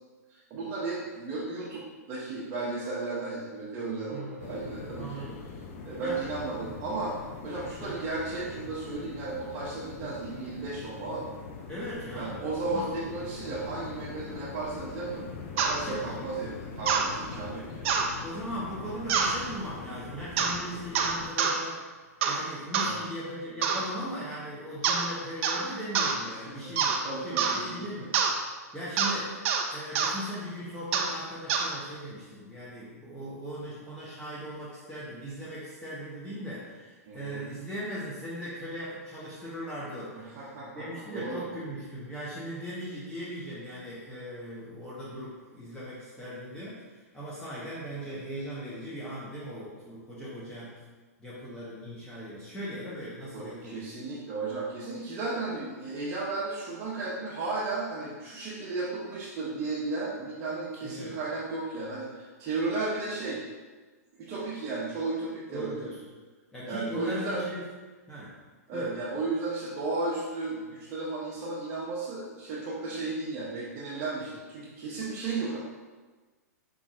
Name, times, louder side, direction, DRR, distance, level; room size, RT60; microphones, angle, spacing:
voice 1, 0.3-5.2 5.8-7.1 7.4-11.3 12.2-15.2 15.5-17.9 22.8-23.0 26.2-27.8 37.1-37.4 40.1-40.9 41.1-41.4 53.3-63.4 64.2-65.9 66.6-67.4 68.7-75.6, right 3 dB, 35° right, -8 dB, 1.2 m, -34 dB
voice 2, 4.1-4.5 4.9-5.4 6.0-6.2 7.8-8.0 10.0-10.1 11.7-12.4 12.7-12.8 15.8-16.2 17.3-17.5 17.9-21.8 22.2-28.1 28.7-29.4 29.7-40.5 40.7-50.8 51.2-53.8 60.8-61.2 65.5-66.0 66.5-67.6 68.1-68.4 68.7-68.9, equal, 10° left, -10 dB, 1.2 m, -39 dB
sound 1, 4.4-21.3, left 5 dB, 50° left, 0.7 m, -42 dB
sound 2, 15.6-15.8 16.9-17.1 17.8-18.1 19.1-19.4 20.4-20.6 20.9-21.6 22.2-22.4 22.7-22.9 23.6-23.9 24.8-25.1 25.4-25.6 25.9-26.2 26.8-27.0 27.4-27.6 28.1-28.3 29.0-29.1 29.4-29.6 29.9-30.1 30.9-31.1 31.5-31.7, right 6 dB, 50° right, 0.6 m, -26 dB
5.5 x 3.7 x 2.5 m, 1.3 s
hypercardioid pair, 110°, 9 cm